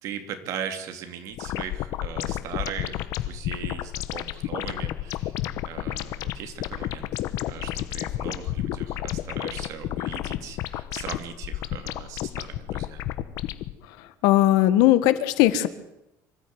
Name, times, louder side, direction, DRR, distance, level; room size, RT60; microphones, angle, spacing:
voice 1, 0.0-5.4 5.6-13.1, right 8 dB, 55° right, 7 dB, 2.9 m, -38 dB
sound 1, 1.3-13.7, left 13 dB, 60° left, 1.1 m, -31 dB
voice 2, 14.2-15.7, left 14 dB, 80° left, 13 dB, 1.5 m, -18 dB
25.0 x 13.0 x 9.5 m, 0.88 s
cardioid pair, 165°, 7 cm